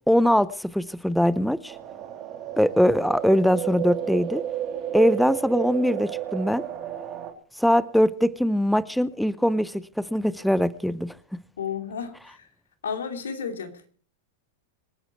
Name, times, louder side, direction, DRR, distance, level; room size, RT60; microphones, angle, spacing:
voice 1, 0.1-1.8 2.6-4.4 4.9-6.6 7.6-11.2, equal, ahead, 17 dB, 0.7 m, -22 dB
sound 1, 1.7-7.3, right 12 dB, 40° right, 2.9 m, -32 dB
voice 2, 11.6-12.5 12.8-13.9, left 6 dB, 80° left, 7 dB, 2.7 m, -32 dB
26.0 x 8.9 x 4.5 m, 0.42 s
hypercardioid pair, 105°, 0 cm